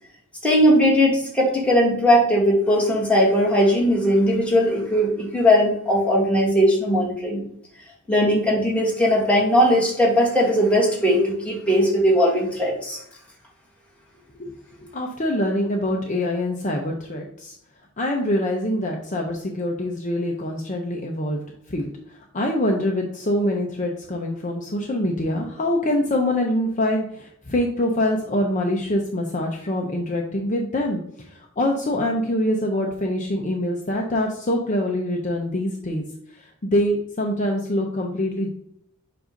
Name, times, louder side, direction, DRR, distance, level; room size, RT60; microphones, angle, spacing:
voice 1, 0.4-7.4 8.1-13.0, equal, 5° left, -4 dB, 1.7 m, -19 dB
voice 2, 14.4-17.6 18.0-21.4 21.7-36.0 36.3-38.5, left 1 dB, 35° left, 1 dB, 0.7 m, -25 dB
7.6 x 2.6 x 5.1 m, 0.71 s
head